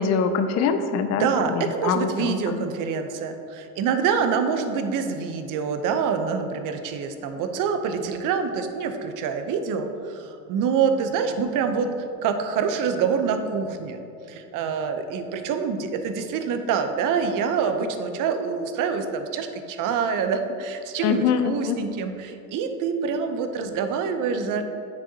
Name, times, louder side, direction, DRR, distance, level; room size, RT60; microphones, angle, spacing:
voice 1, 0.0-2.7 21.0-21.8, left 6 dB, 40° left, 8 dB, 0.5 m, -24 dB
voice 2, 1.1-14.0 14.3-24.6, right 6 dB, 55° right, 7 dB, 0.7 m, -26 dB
7.5 x 6.2 x 2.8 m, 2.7 s
supercardioid pair, 100°, 39 cm